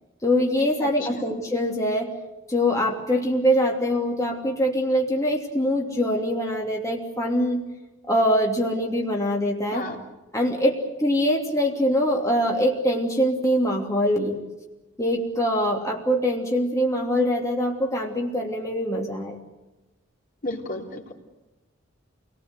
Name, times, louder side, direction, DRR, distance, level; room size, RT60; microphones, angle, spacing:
voice 1, 0.2-2.1 2.5-7.6 8.0-9.9 10.3-14.4 15.0-19.4, equal, 15° left, -1 dB, 2.9 m, -23 dB
voice 2, 0.8-1.2 9.7-10.0 20.4-21.1, left 2 dB, 50° left, 0 dB, 3.5 m, -33 dB
28.0 x 19.0 x 8.1 m, 1.0 s
head